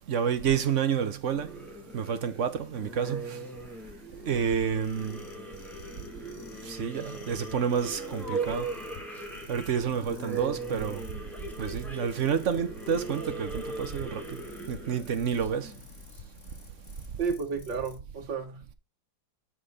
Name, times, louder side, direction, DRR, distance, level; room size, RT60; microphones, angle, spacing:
voice 1, 0.1-1.5 1.9-3.4 4.3-5.2 6.7-8.7 9.5-11.0 11.6-14.4 14.7-15.7, right 7 dB, 45° right, 1.1 m, -29 dB
sound 1, 1.3-16.2, right 3 dB, ahead, 2.0 m, -39 dB
sound 2, 2.6-18.0, left 7 dB, 45° left, 1.5 m, -51 dB
voice 2, 17.2-18.8, right 5 dB, 75° right, 2.7 m, -32 dB
9.9 x 4.4 x 5.0 m
omnidirectional pair, 2.0 m